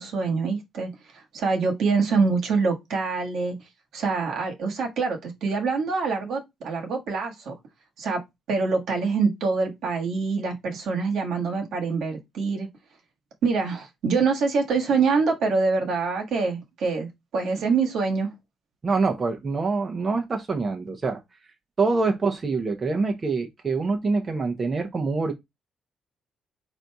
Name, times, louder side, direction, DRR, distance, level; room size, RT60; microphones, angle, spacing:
voice 1, 0.0-3.6 3.9-7.5 8.0-8.2 8.5-12.7 13.4-18.3, right 4 dB, 75° right, 1.4 m, -25 dB
voice 2, 18.8-21.2 21.8-25.3, right 4 dB, 35° right, 0.9 m, -25 dB
4.1 x 2.7 x 4.6 m
cardioid pair, 90°, 0 cm